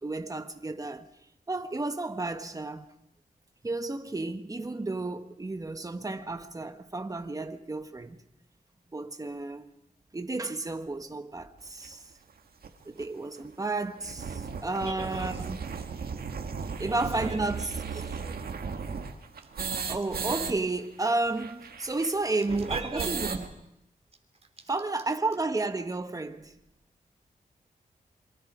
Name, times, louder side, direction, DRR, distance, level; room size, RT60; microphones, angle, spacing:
voice 1, 0.0-1.1 1.5-2.9 3.6-8.2 8.9-9.6 10.1-12.0 12.8-15.7 16.8-18.0 19.9-23.5 24.7-26.5, right 2 dB, 20° right, 1.4 m, -32 dB
sound 1, 11.8-11.9 12.6-12.7 13.0-13.1 13.4-13.5 13.8-20.5 20.8-20.9 21.1-23.5, right 5 dB, 80° right, 1.8 m, -36 dB
voice 2, 14.8-15.3 16.9-17.0 17.3-17.4 17.9-18.3 22.5-23.4 24.6-24.7, right 3 dB, 40° right, 3.4 m, -38 dB
26.5 x 23.5 x 5.0 m
wide cardioid pair, 110°, 16 cm